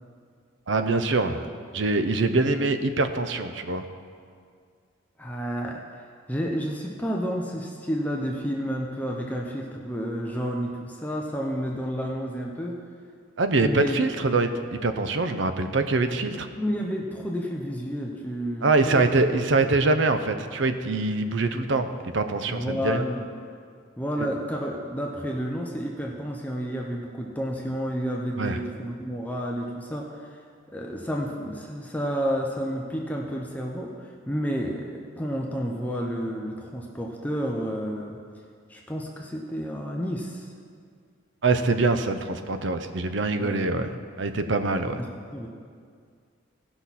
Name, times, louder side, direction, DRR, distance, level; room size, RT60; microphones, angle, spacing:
voice 1, 0.7-1.4 1.7-3.8 13.4-16.5 18.6-21.9 22.1-23.0 28.4-28.6 41.4-43.9 44.2-45.0, right 3 dB, 65° right, 9 dB, 0.6 m, -24 dB
voice 2, 5.2-5.8 6.3-12.8 13.6-14.0 16.6-19.1 19.6-19.7 22.5-23.3 24.0-30.4 30.7-38.2 38.7-40.5 43.4-43.7 45.0-45.1 45.3-45.5, equal, 10° left, -1 dB, 0.6 m, -30 dB
17.5 x 5.8 x 4.1 m, 2.2 s
head